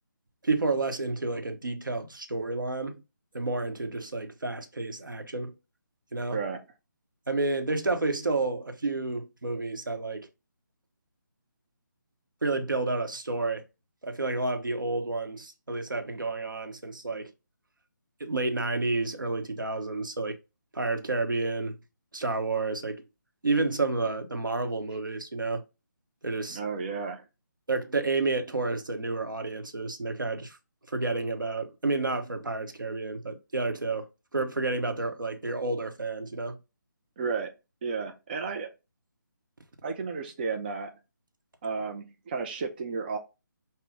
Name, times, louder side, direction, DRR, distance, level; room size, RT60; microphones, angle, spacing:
voice 1, 0.4-3.0 3.3-5.6 6.1-6.4 7.3-10.3 12.4-13.6 14.0-17.3 18.2-20.4 20.7-21.8 22.1-23.0 23.4-25.6 26.2-26.6 27.7-30.6 30.9-34.1 34.3-36.6, right 3 dB, 75° right, 0.9 m, -30 dB
voice 2, 26.5-27.2 37.2-37.5 37.8-38.7 39.8-40.9 41.6-43.2, right 5 dB, 30° right, 0.5 m, -32 dB
5.6 x 2.1 x 3.5 m
figure-of-eight pair, 150°, 11 cm